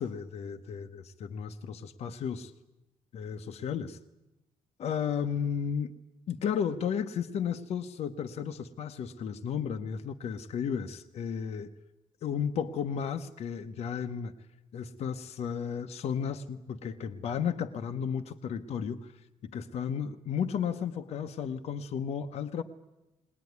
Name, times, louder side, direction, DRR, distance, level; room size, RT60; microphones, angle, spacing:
voice 1, 0.0-2.5 3.1-4.0 4.8-5.9 6.3-11.7 12.2-14.3 14.7-19.1 19.4-22.6, left 7 dB, 60° left, 5 dB, 1.0 m, -33 dB
21.0 x 19.5 x 9.6 m, 1.0 s
cardioid pair, 120°, 12 cm